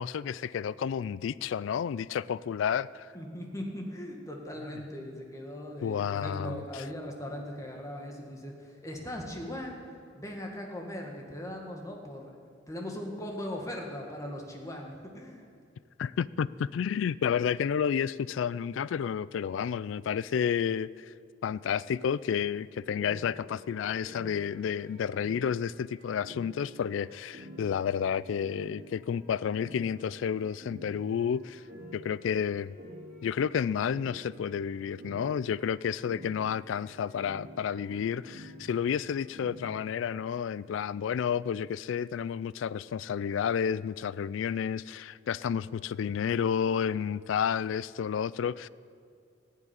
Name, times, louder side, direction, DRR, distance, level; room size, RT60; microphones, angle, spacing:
voice 1, 0.0-3.1 5.8-6.6 16.0-21.1 21.4-31.6 31.9-32.7 33.2-48.7, left 7 dB, 75° left, 20 dB, 0.3 m, -31 dB
voice 2, 3.1-9.8 10.1-12.3 12.7-15.5, left 1 dB, 15° left, 1 dB, 1.8 m, -39 dB
sound 1, 23.0-40.4, equal, 50° right, 2.1 m, -49 dB
15.0 x 7.4 x 9.6 m, 2.4 s
head